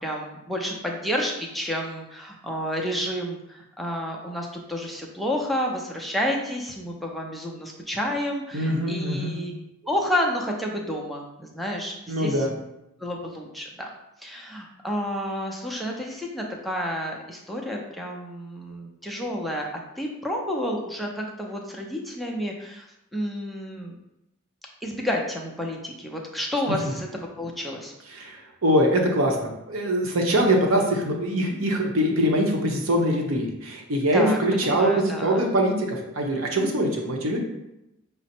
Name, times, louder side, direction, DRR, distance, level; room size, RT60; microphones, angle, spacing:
voice 1, 0.0-9.5 9.8-12.4 13.0-13.9 14.2-19.7 20.0-22.9 23.1-24.0 24.8-27.1 27.4-27.9 34.1-35.5, equal, ahead, 0 dB, 0.5 m, -30 dB
voice 2, 8.5-9.4 12.1-12.5 28.1-37.4, equal, 90° right, 1 dB, 0.8 m, -23 dB
5.1 x 2.0 x 4.3 m, 0.89 s
head